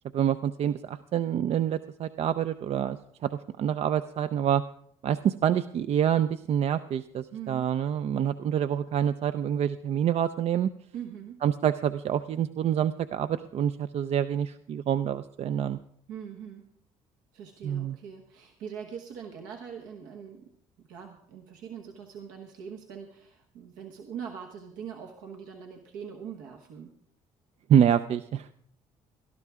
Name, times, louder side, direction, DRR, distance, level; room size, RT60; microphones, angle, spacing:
voice 1, 0.1-4.6 5.0-10.7 11.4-15.8 17.6-18.0 27.7-28.5, right 9 dB, 50° right, 12 dB, 0.4 m, -27 dB
voice 2, 7.3-7.7 10.9-11.4 16.1-16.7 17.3-27.0, right 7 dB, 80° right, 2 dB, 1.2 m, -42 dB
18.0 x 12.0 x 3.6 m, 0.67 s
supercardioid pair, 80°, 13 cm